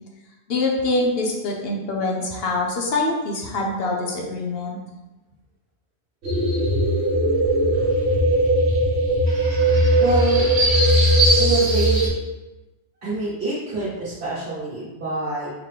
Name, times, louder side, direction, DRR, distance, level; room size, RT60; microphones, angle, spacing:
voice 1, 0.5-4.8, left 2 dB, 70° left, 0 dB, 0.9 m, -24 dB
sound 1, 6.2-12.1, right 1 dB, 90° right, 1.2 m, -18 dB
voice 2, 9.9-10.5 11.4-12.1 13.0-15.5, right 2 dB, 70° right, -10 dB, 1.3 m, -27 dB
4.0 x 2.8 x 3.3 m, 1.1 s
omnidirectional pair, 1.1 m